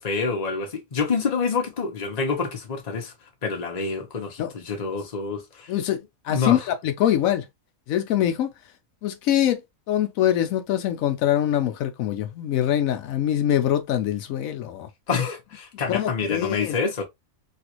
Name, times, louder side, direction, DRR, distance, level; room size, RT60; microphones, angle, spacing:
voice 1, 0.0-3.1 3.4-5.7 6.3-6.7 15.1-17.0, left 5 dB, 35° left, 0.9 m, -27 dB
voice 2, 5.7-6.0 6.2-7.5 7.9-8.5 9.0-9.6 9.9-14.9 15.9-16.8, left 11 dB, 80° left, 1.0 m, -23 dB
3.3 x 2.4 x 2.9 m
omnidirectional pair, 1.4 m